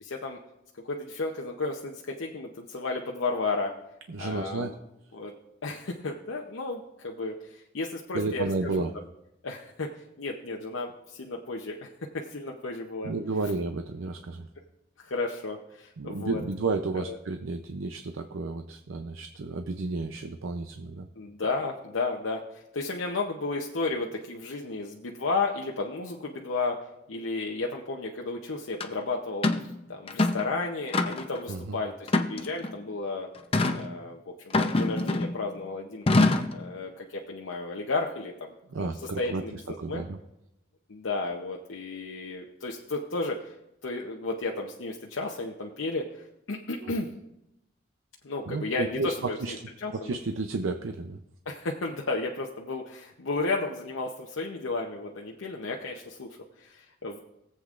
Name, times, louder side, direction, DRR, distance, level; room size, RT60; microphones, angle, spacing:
voice 1, 0.0-0.4 0.9-3.7 4.2-4.8 5.1-5.3 5.6-8.9 9.4-9.9 10.2-11.9 12.1-13.1 15.0-16.4 16.9-17.2 21.2-26.8 27.1-29.5 29.9-33.3 33.7-34.2 34.6-36.1 36.5-40.1 40.9-43.5 43.8-47.1 48.2-50.1 51.5-56.3 56.6-57.2, left 3 dB, 85° left, 0 dB, 0.8 m, -33 dB
voice 2, 4.1-4.7 8.1-8.9 13.0-14.5 16.0-21.1 31.5-31.8 38.7-40.2 46.8-46.9 48.5-49.5 49.9-51.2, right 3 dB, 85° right, 6 dB, 0.6 m, -32 dB
sound 1, 28.8-28.9 29.4-29.7 30.1-30.5 30.9-31.4 32.1-32.7 33.5-33.8 34.5-35.4 36.1-36.6, left 2 dB, 30° left, 0.6 m, -24 dB
21.5 x 7.8 x 2.5 m, 0.88 s
head